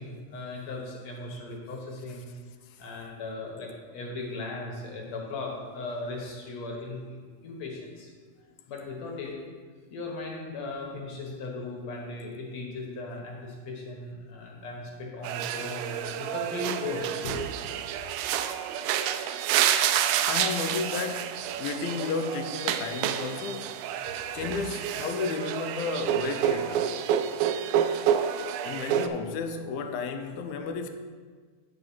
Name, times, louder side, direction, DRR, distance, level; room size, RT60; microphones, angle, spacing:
voice 1, 0.0-2.3 2.8-8.1 8.7-9.4 9.9-17.4 24.0-24.6, left 2 dB, 60° left, 2.1 m, -37 dB
sound 1, 15.2-29.1, right 10 dB, 90° right, 2.4 m, -29 dB
voice 2, 20.2-23.9 24.3-26.9 28.6-30.9, left 5 dB, 85° left, 2.5 m, -33 dB
9.1 x 5.8 x 5.5 m
omnidirectional pair, 4.3 m